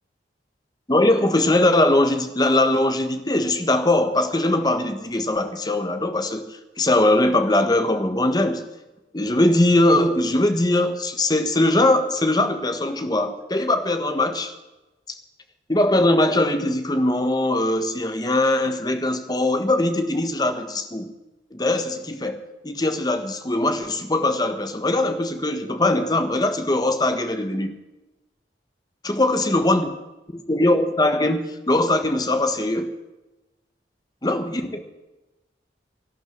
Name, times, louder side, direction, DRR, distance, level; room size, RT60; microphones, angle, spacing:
voice 1, 0.9-8.6 9.1-14.5 15.7-21.1 21.5-27.7 29.0-29.9 30.3-32.9 34.2-34.8, left 1 dB, 20° left, 8 dB, 1.5 m, -21 dB
13.0 x 12.0 x 7.9 m, 1.0 s
head